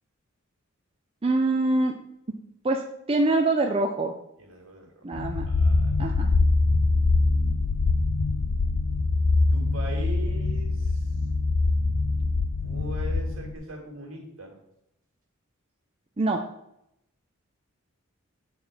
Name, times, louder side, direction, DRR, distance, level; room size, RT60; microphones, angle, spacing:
voice 1, 1.2-2.0 2.6-2.8 3.1-4.1 5.0-5.5 6.0-6.3 16.2-16.4, right 2 dB, 25° right, 3 dB, 0.5 m, -24 dB
voice 2, 4.4-5.0 5.5-6.0 9.5-11.1 12.6-14.5, right 1 dB, 65° right, 1 dB, 2.3 m, -40 dB
sound 1, 5.1-13.6, left 3 dB, 80° left, 0.5 m, -24 dB
7.8 x 4.4 x 5.6 m, 0.80 s
head